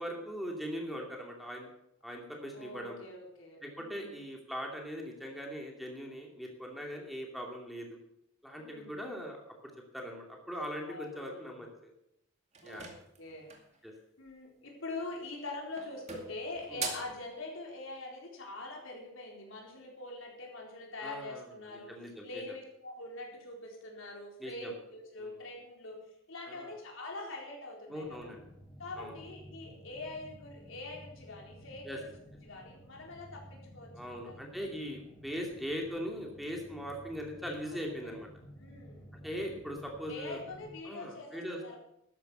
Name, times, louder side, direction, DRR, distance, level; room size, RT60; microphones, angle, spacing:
voice 1, 0.0-1.7 2.0-3.0 3.6-8.0 8.4-9.6 9.9-11.9 12.6-12.9 13.8-13.9 16.7-16.9 21.0-21.5 21.9-22.4 24.4-24.7 25.2-25.3 26.5-26.7 27.9-28.4 29.0-29.1 31.8-32.0 33.9-38.3 39.2-40.4 40.8-41.7, equal, ahead, 0 dB, 2.5 m, -40 dB
voice 2, 2.5-4.1 8.6-8.9 10.9-11.7 12.6-12.9 13.2-13.5 14.2-21.9 22.2-26.0 26.3-28.3 28.8-32.1 32.4-34.4 37.7-38.1 38.6-39.1 40.1-41.8, left 2 dB, 75° left, 0 dB, 4.2 m, -44 dB
sound 1, 12.5-13.8 15.0-15.4 15.8-17.2, right 5 dB, 35° right, 2.3 m, -42 dB
sound 2, 28.0-40.8, equal, 20° left, 1.7 m, -53 dB
13.0 x 10.5 x 6.7 m, 0.78 s
head